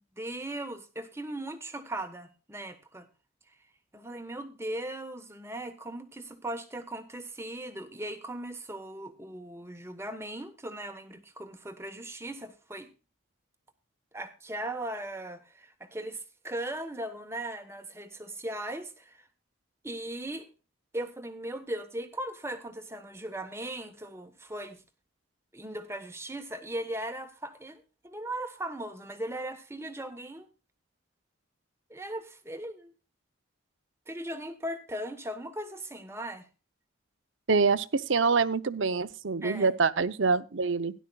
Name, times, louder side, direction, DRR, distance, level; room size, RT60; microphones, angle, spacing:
voice 1, 0.0-3.1 3.5-3.6 3.9-12.9 14.1-19.3 19.8-20.5 20.9-24.8 25.5-30.5 31.9-32.9 34.1-36.5 39.4-39.7, right 1 dB, 15° right, 7 dB, 1.2 m, -38 dB
voice 2, 37.5-40.9, right 4 dB, 75° right, 15 dB, 0.7 m, -25 dB
17.0 x 11.5 x 2.3 m, 0.32 s
head